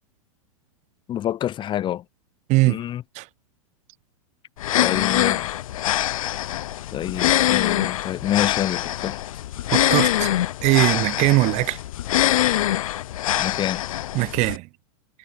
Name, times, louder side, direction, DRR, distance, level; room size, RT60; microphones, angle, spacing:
voice 1, 1.1-2.0 2.7-3.0 4.8-5.5 6.9-9.2 13.4-13.8, left 11 dB, 25° left, 1.3 m, -27 dB
voice 2, 2.5-2.8 3.1-3.3 9.7-10.3 10.6-11.8 14.1-14.7, right 22 dB, 40° right, 1.2 m, -20 dB
sound 1, 4.6-14.6, left 13 dB, 70° left, 1.7 m, -23 dB
hypercardioid pair, 125°, 18 cm